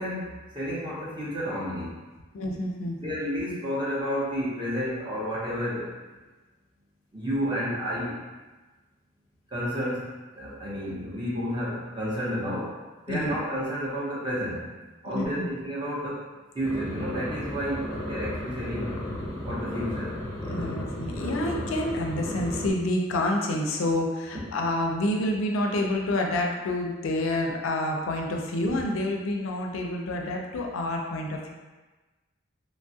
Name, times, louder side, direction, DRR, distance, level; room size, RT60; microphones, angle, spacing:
voice 1, 0.0-1.9 3.0-5.9 7.1-8.2 9.5-12.8 13.1-14.6 15.0-16.3 16.5-19.0 19.5-20.2, equal, 20° right, -8 dB, 0.7 m, -31 dB
voice 2, 2.3-3.0 13.1-13.4 15.1-15.5 20.5-31.5, left 1 dB, 75° left, 1 dB, 0.4 m, -28 dB
sound 1, 16.6-22.7, left 1 dB, 15° left, 0.5 m, -34 dB
3.1 x 2.3 x 2.7 m, 1.2 s
head